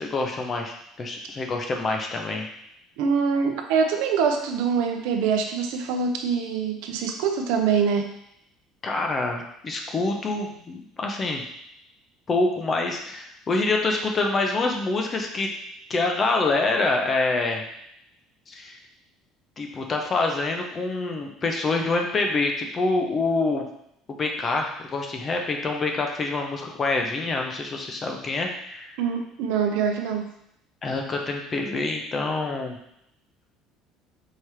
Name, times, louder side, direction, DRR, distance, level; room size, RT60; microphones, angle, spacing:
voice 1, 0.0-2.5 8.8-11.4 12.3-15.5 15.9-17.6 18.5-18.8 19.6-23.7 24.1-28.9 30.8-32.8, left 3 dB, 20° left, 2 dB, 0.5 m, -26 dB
voice 2, 3.0-8.1 29.0-30.3, right 6 dB, 80° right, 4 dB, 0.6 m, -24 dB
4.7 x 3.4 x 2.9 m, 0.76 s
cardioid pair, 170°, 0 cm